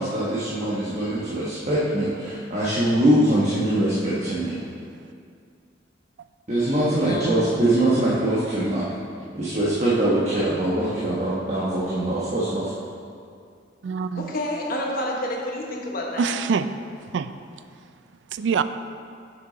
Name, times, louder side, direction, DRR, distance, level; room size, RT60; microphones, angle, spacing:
voice 1, 0.0-4.6 6.5-8.8 9.3-12.7, right 1 dB, 35° right, -7 dB, 1.1 m, -23 dB
voice 2, 7.0-7.8 14.2-16.4, left 1 dB, 50° left, -1 dB, 1.1 m, -29 dB
voice 3, 13.8-14.3 16.2-16.8 17.1-17.3 18.3-18.6, right 6 dB, 70° right, 12 dB, 0.3 m, -25 dB
8.1 x 6.0 x 3.9 m, 2.3 s
head